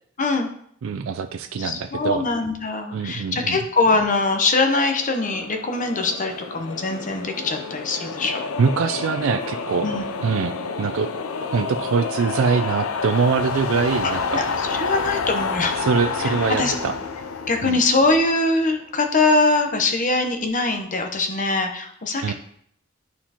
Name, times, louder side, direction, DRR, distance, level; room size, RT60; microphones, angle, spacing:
voice 1, 0.2-0.5 1.6-8.4 9.8-10.1 14.0-14.4 14.7-15.9 16.2-16.7 17.5-22.3, left 3 dB, 40° left, 5 dB, 0.8 m, -22 dB
voice 2, 0.8-2.2 2.9-3.6 8.6-9.9 10.2-11.1 11.4-14.4 15.8-16.9 17.6-17.8 22.2-22.3, right 5 dB, 70° right, 7 dB, 0.4 m, -23 dB
sound 1, 4.4-18.7, left 4 dB, 90° left, 0.5 m, -29 dB
11.0 x 4.3 x 2.9 m, 0.68 s
head